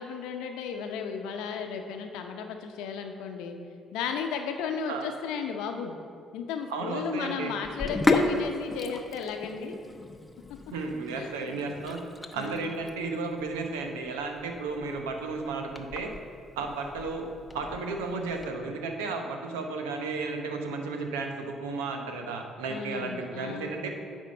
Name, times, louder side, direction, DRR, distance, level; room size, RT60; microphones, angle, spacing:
voice 1, 0.0-3.6 3.9-6.0 6.3-9.7 11.1-11.3 12.4-12.7 22.7-23.7, left 6 dB, 75° left, 5 dB, 0.7 m, -34 dB
voice 2, 6.7-7.5 10.7-12.0 12.3-16.1 16.6-17.3 17.5-23.9, right 3 dB, 85° right, 4 dB, 0.8 m, -33 dB
Sink (filling or washing), 7.6-18.5, left 2 dB, 15° left, 0.8 m, -34 dB
9.9 x 3.6 x 6.7 m, 2.3 s
hypercardioid pair, 50°, 0 cm